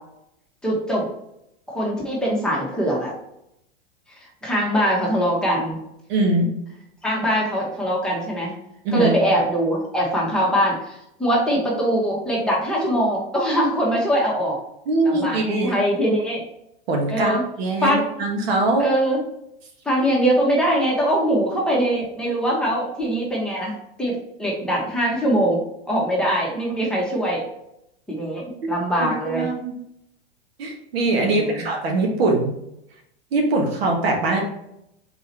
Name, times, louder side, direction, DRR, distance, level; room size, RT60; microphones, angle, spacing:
voice 1, 0.6-1.1 1.7-3.1 4.4-5.8 7.0-8.5 8.9-14.6 15.0-16.4 17.1-17.4 17.8-18.1 18.8-19.2 19.8-25.6 25.9-27.4 28.1-29.5 31.2-31.6, equal, ahead, -5 dB, 1.4 m, -22 dB
voice 2, 6.1-6.5 8.8-9.1 14.9-15.7 16.9-18.9 29.0-29.7 30.6-32.5 33.3-34.4, right 2 dB, 70° right, 1 dB, 1.4 m, -22 dB
4.2 x 3.8 x 2.9 m, 0.80 s
hypercardioid pair, 115°, 31 cm